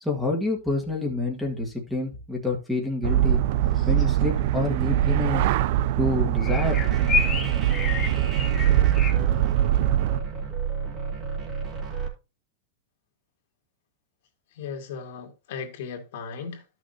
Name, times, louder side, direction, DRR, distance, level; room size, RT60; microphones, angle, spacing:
voice 1, 0.0-3.4 3.9-5.5 6.0-6.9, left 3 dB, ahead, 1.7 m, -28 dB
sound 1, 3.0-10.2, right 12 dB, 50° right, 0.4 m, -22 dB
sound 2, 3.8-4.1 6.4-9.1, left 6 dB, 20° left, 1.0 m, -29 dB
sound 3, 6.5-12.1, right 6 dB, 25° right, 2.4 m, -32 dB
voice 2, 14.5-16.6, left 6 dB, 60° left, 2.2 m, -36 dB
13.5 x 6.2 x 2.7 m
supercardioid pair, 160°, 0 cm